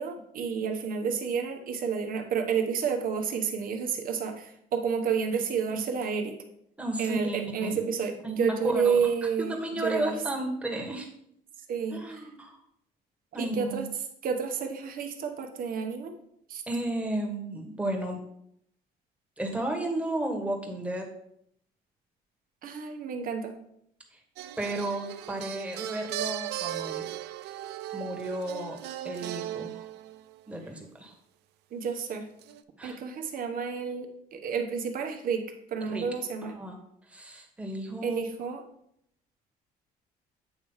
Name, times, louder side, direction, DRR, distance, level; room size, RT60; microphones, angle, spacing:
voice 1, 0.0-6.4 7.0-10.2 11.7-12.2 13.4-13.9 14.2-16.1 16.5-16.6 22.6-23.6 31.7-32.3 32.8-36.6 38.0-38.6, right 6 dB, 55° right, 5 dB, 1.1 m, -30 dB
voice 2, 6.8-7.8 8.2-9.1 9.5-11.1 11.9-12.6 13.3-13.9 16.7-18.2 19.4-21.1 24.6-27.0 27.9-28.8 29.0-29.8 30.5-31.1 32.8-33.0 35.8-36.0 36.6-36.8 37.1-38.2, right 1 dB, 5° right, 1 dB, 1.5 m, -33 dB
sound 1, 24.4-30.4 32.4-32.6, right 13 dB, 80° right, 0.5 m, -37 dB
8.4 x 3.2 x 5.5 m, 0.73 s
cardioid pair, 110°, 17 cm